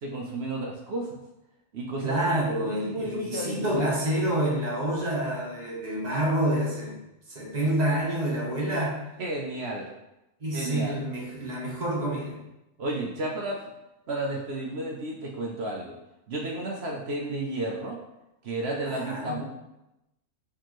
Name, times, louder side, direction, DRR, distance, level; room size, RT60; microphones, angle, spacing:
voice 1, 0.0-1.2 1.7-2.3 2.6-4.0 7.6-7.7 9.2-9.9 10.5-11.0 12.8-13.6 14.1-15.9 16.3-18.0 18.4-19.4, right 2 dB, 60° right, 0 dB, 0.7 m, -32 dB
voice 2, 2.0-7.0 7.3-9.0 10.4-12.4 18.9-19.4, right 1 dB, 30° right, -4 dB, 1.0 m, -28 dB
4.5 x 3.6 x 3.0 m, 0.92 s
omnidirectional pair, 1.6 m